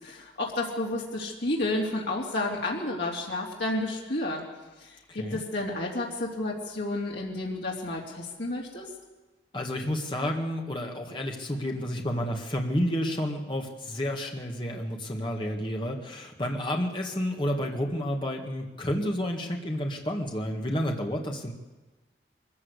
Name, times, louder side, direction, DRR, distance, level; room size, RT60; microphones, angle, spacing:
voice 1, 0.0-4.4 4.8-8.9, left 2 dB, 75° left, -3 dB, 3.2 m, -31 dB
voice 2, 5.1-5.4 9.5-21.5, equal, 25° left, 1 dB, 1.9 m, -30 dB
22.5 x 15.0 x 8.3 m, 1.2 s
head